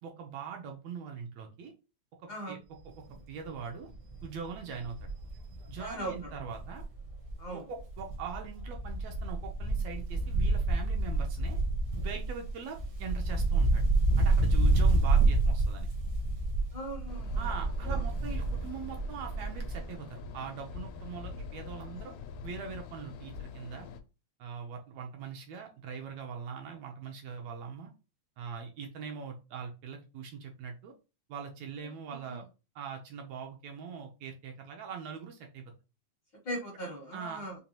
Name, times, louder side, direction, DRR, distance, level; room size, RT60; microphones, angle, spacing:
voice 1, 0.0-1.7 2.2-2.6 2.9-3.0 3.3-3.9 4.2-5.1 5.7-6.8 7.5-11.6 12.0-13.9 14.2-15.9 17.4-22.1 22.4-23.9 24.4-27.9 28.4-30.9 31.3-32.4 32.8-35.7 37.1-37.4, right 6 dB, 75° right, 3 dB, 1.8 m, -42 dB
voice 2, 2.3-2.6 5.8-6.4 7.4-7.7 16.7-17.5 17.8-18.0 32.1-32.4 36.4-37.6, right 1 dB, 65° left, -3 dB, 1.1 m, -39 dB
Wind, 2.9-3.2 3.6-3.7 3.9-7.5 7.8-19.9 20.2-20.3, right 2 dB, 60° right, 1.1 m, -29 dB
sound 1, 17.1-24.0, left 6 dB, 80° left, 1.9 m, -45 dB
5.2 x 2.2 x 2.9 m, 0.30 s
omnidirectional pair, 3.4 m